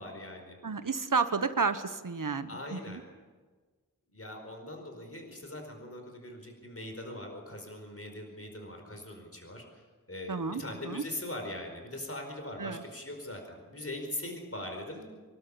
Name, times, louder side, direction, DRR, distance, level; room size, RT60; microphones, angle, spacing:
voice 1, 0.0-0.6 2.5-3.0 4.1-9.8 10.1-15.0, left 1 dB, 45° left, 3 dB, 4.8 m, -41 dB
voice 2, 0.6-3.0 10.3-11.0 12.6-12.8, right 4 dB, 70° right, 10 dB, 1.3 m, -31 dB
26.0 x 12.5 x 8.6 m, 1.4 s
wide cardioid pair, 50°, 33 cm